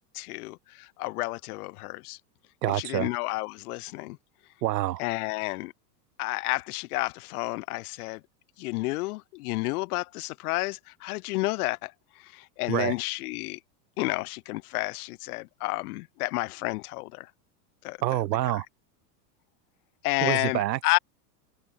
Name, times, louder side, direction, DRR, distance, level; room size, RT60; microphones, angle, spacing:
voice 1, 0.1-2.2 2.7-4.2 5.0-5.7 6.2-8.2 8.6-13.6 14.0-17.3 17.8-18.0 20.0-21.0, left 22 dB, 65° left, 3.2 m, -31 dB
voice 2, 2.6-3.1 4.6-5.0 12.7-12.9 18.0-18.7 20.2-21.0, right 15 dB, 85° right, 1.8 m, -27 dB
supercardioid pair, 140°, 49 cm